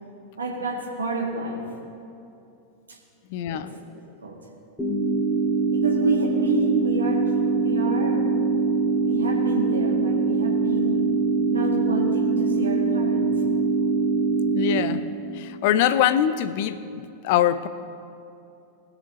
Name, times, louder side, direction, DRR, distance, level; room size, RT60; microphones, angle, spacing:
voice 1, 0.4-1.6 2.9-3.0 3.5-3.6 4.2-4.4 5.7-8.3 9.0-11.0 11.5-13.4, right 2 dB, 75° right, -1 dB, 1.9 m, -29 dB
voice 2, 3.3-3.7 14.5-15.0 15.4-17.7, left 11 dB, 50° left, 13 dB, 0.5 m, -23 dB
sound 1, 4.8-14.8, right 4 dB, 10° left, 2.0 m, -23 dB
20.5 x 6.9 x 3.0 m, 2.6 s
figure-of-eight pair, 90°, 0 cm